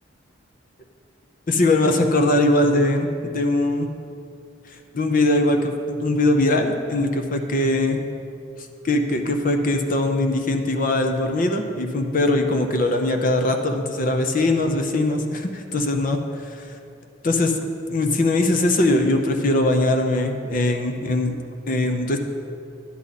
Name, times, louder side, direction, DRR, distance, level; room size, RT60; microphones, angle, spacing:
voice 1, 1.5-3.1 3.3-3.9 4.9-8.0 8.8-16.2 16.4-16.7 17.2-17.6 17.9-21.3 21.7-22.2, left 2 dB, 45° left, 5 dB, 0.7 m, -21 dB
11.0 x 9.6 x 4.1 m, 2.5 s
head